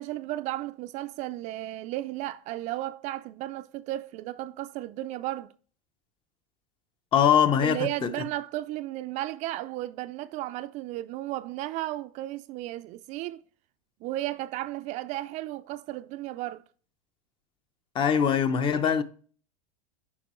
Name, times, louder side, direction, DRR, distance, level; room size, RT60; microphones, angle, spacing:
voice 1, 0.0-5.5 7.6-13.4 14.0-16.6, right 15 dB, 40° right, 0.4 m, -34 dB
voice 2, 7.1-8.1 17.9-19.0, left 8 dB, 25° left, 0.7 m, -22 dB
9.6 x 5.2 x 3.0 m
supercardioid pair, 130°, 18 cm